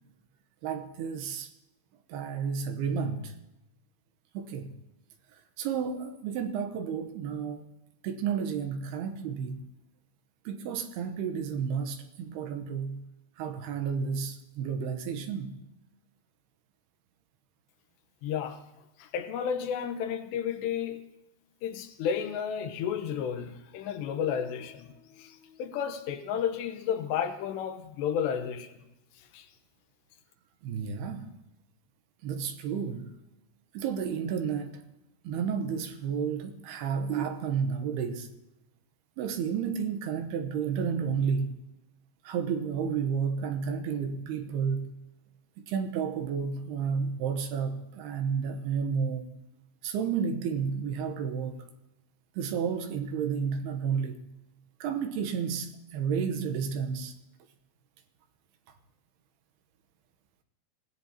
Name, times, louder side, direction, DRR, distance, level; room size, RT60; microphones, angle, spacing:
voice 1, 0.6-1.5 2.1-3.3 4.3-4.7 5.6-7.7 8.0-9.6 10.5-13.0 13.4-15.6 30.6-31.3 32.2-33.1 33.7-34.8 35.2-38.3 39.2-41.6 42.2-44.9 45.6-49.3 49.8-51.6 52.4-54.2 54.8-57.1, right 6 dB, 75° right, 2.9 m, -31 dB
voice 2, 18.2-18.6 19.0-21.0 21.6-28.8 29.2-29.5, left 8 dB, 85° left, 3.2 m, -32 dB
25.5 x 17.0 x 2.9 m
omnidirectional pair, 4.9 m